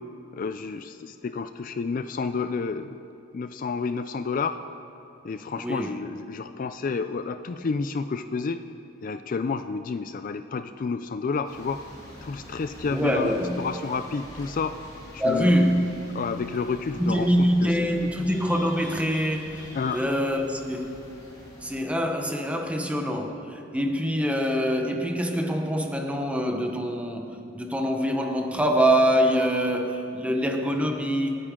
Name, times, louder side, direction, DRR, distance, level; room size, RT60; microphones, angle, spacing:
voice 1, 0.3-3.0 3.3-4.6 5.2-8.6 9.0-11.8 12.2-14.8 15.1-15.6 16.1-17.7 18.0-18.1 19.7-20.0, left 4 dB, 40° left, 10 dB, 0.3 m, -30 dB
voice 2, 5.6-5.9 12.9-13.6 15.2-15.9 17.0-21.0 21.6-31.4, equal, 5° right, 4 dB, 1.0 m, -25 dB
sound 1, 11.4-21.8, equal, 20° left, 2.7 m, -45 dB
26.5 x 9.8 x 3.7 m, 2.8 s
head